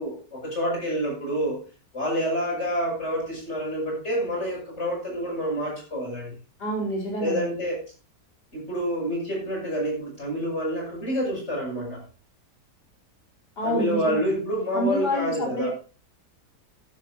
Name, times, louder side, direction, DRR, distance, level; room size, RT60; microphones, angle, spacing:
voice 1, 0.0-1.6 1.9-6.4 7.2-7.8 8.5-12.0 13.6-15.7, equal, 40° left, -2 dB, 8.5 m, -28 dB
voice 2, 6.6-7.4 13.6-14.2 14.7-15.7, equal, 80° left, -1 dB, 5.1 m, -27 dB
13.5 x 12.0 x 3.0 m, 0.35 s
omnidirectional pair, 1.7 m